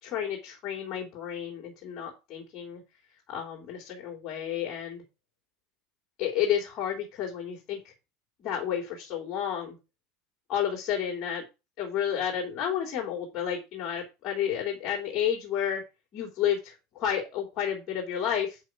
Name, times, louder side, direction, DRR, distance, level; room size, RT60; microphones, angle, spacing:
voice 1, 0.0-2.8 3.3-5.0 6.2-7.9 8.4-9.8 10.5-11.4 11.8-15.8 16.1-18.6, left 9 dB, 30° left, -2 dB, 3.3 m, -31 dB
10.0 x 5.5 x 6.2 m, 0.27 s
supercardioid pair, 175°, 0 cm